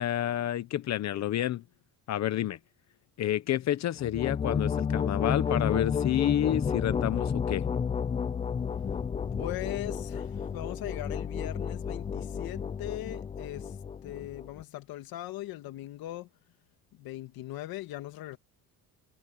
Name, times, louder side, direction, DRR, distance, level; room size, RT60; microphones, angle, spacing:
voice 1, 0.0-1.6 2.1-2.6 3.2-7.7, left 12 dB, 50° left, 1.0 m, -29 dB
sound 1, 4.0-14.6, left 6 dB, 20° left, 0.4 m, -31 dB
voice 2, 9.4-16.3 16.9-18.4, left 15 dB, 75° left, 2.0 m, -40 dB
cardioid pair, 160°, 36 cm